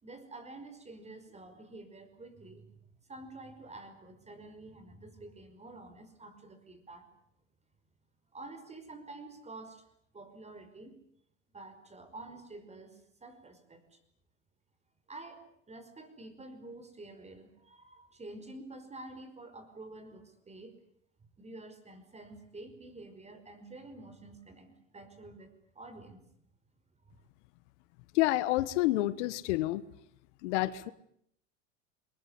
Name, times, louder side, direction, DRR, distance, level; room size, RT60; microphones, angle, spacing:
voice 1, 0.0-7.1 8.3-9.8 10.1-11.0 11.5-14.0 15.1-20.8 21.4-26.2 27.0-27.2, right 2 dB, 20° right, 10 dB, 5.3 m, -49 dB
voice 2, 28.1-29.8 30.4-30.9, left 17 dB, 70° left, 15 dB, 1.4 m, -28 dB
23.5 x 20.0 x 9.8 m, 0.71 s
hypercardioid pair, 95°, 36 cm